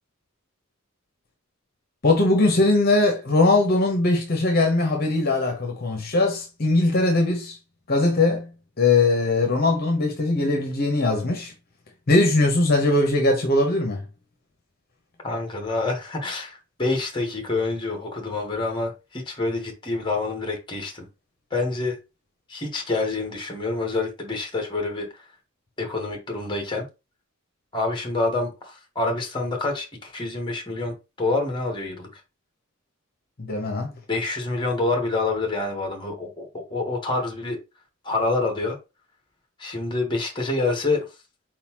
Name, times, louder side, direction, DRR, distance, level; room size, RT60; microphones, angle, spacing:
voice 1, 2.0-7.6 7.9-8.5 8.8-11.5 12.1-14.0 33.4-33.9, left 2 dB, 45° left, 1.0 m, -20 dB
voice 2, 15.2-21.1 21.5-22.0 22.5-25.3 25.8-26.9 27.7-32.2 34.1-37.6 38.0-38.8 39.6-41.1, left 3 dB, 20° left, 1.2 m, -27 dB
4.5 x 3.9 x 2.9 m
head